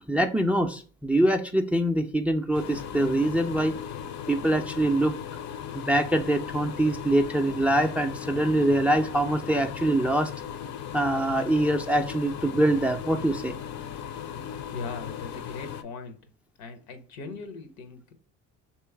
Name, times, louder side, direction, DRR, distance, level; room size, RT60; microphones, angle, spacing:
voice 1, 0.0-3.8 4.3-5.1 5.7-10.3 10.9-13.5, right 1 dB, 5° right, 6 dB, 0.3 m, -24 dB
sound 1, 2.5-15.8, left 9 dB, 50° left, 0.6 m, -37 dB
voice 2, 14.7-16.2 16.6-18.1, left 4 dB, 80° left, 8 dB, 0.9 m, -40 dB
3.1 x 3.0 x 4.5 m, 0.40 s
supercardioid pair, 70°, 37 cm